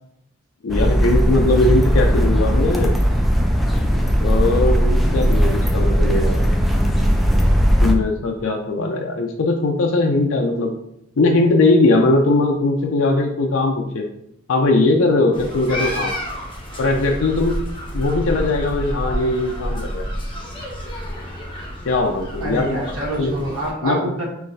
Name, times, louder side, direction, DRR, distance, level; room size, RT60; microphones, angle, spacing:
voice 1, 0.6-2.9 4.2-6.4 7.8-10.8 11.2-14.1 14.5-16.1 16.8-17.6 17.9-20.0 21.8-22.8 23.2-23.3 23.8-24.0, left 2 dB, 75° left, 2 dB, 0.5 m, -19 dB
sound 1, 0.7-7.9, equal, ahead, 0.4 m, -17 dB
sound 2, 15.3-23.7, equal, 25° left, 0.9 m, -29 dB
voice 2, 22.4-24.2, right 1 dB, 80° right, -4 dB, 1.3 m, -26 dB
5.8 x 3.2 x 2.6 m, 0.78 s
head